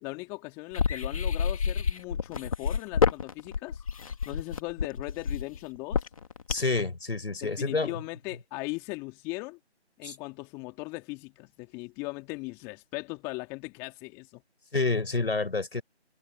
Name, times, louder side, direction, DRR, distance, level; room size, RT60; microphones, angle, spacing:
voice 1, 0.0-6.0 7.4-9.6 10.0-14.4, left 25 dB, 10° left, 2.4 m, -39 dB
sound 1, 0.7-6.8, left 6 dB, 30° left, 2.4 m, -28 dB
voice 2, 6.5-8.0 10.0-10.2 14.7-15.8, left 3 dB, 60° left, 5.3 m, -28 dB
figure-of-eight pair, 160°, 34 cm